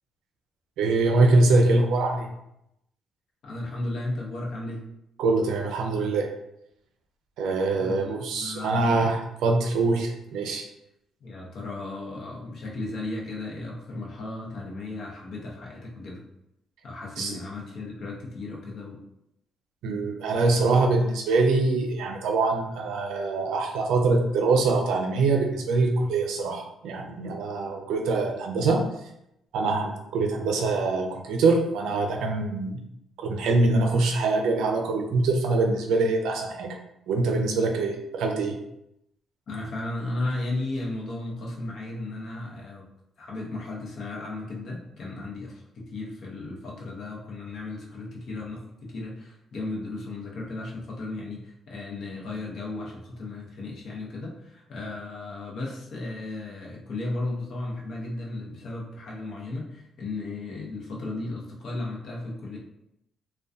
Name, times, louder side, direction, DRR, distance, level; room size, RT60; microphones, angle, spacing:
voice 1, 0.8-2.3 5.2-6.3 7.4-10.6 17.2-17.4 19.8-28.8 29.5-32.8 33.2-36.8 37.1-38.6, right 3 dB, 85° right, 3 dB, 0.4 m, -24 dB
voice 2, 3.4-4.8 7.7-9.0 11.2-16.2 16.8-19.0 39.5-42.9 43.2-62.6, left 2 dB, 65° left, -2 dB, 0.7 m, -35 dB
2.6 x 2.2 x 2.3 m, 0.81 s
cardioid pair, 90°, 0 cm